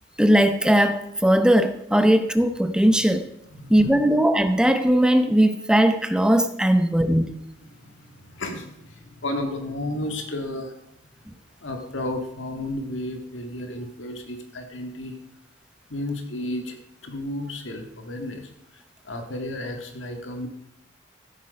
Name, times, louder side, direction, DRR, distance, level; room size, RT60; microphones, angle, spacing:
voice 1, 0.2-3.3 3.7-7.3, right 1 dB, 5° right, 9 dB, 0.8 m, -19 dB
voice 2, 3.5-4.0 7.7-10.8 11.6-15.2 15.9-16.8 17.0-20.5, left 1 dB, 80° left, 4 dB, 1.8 m, -33 dB
15.0 x 8.4 x 4.9 m, 0.79 s
head